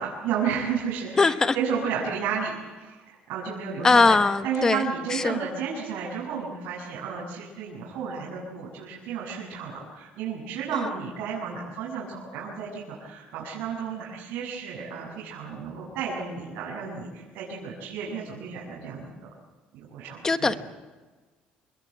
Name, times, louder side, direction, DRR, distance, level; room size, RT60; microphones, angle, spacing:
voice 1, 0.0-4.2 4.4-19.3 19.7-20.5, right 6 dB, 80° right, 7.4 m, -32 dB
voice 2, 1.2-1.5 3.8-5.4 10.7-10.9 20.2-20.5, left 4 dB, 20° left, 1.0 m, -21 dB
27.5 x 21.5 x 8.1 m
cardioid pair, 155°, 3 cm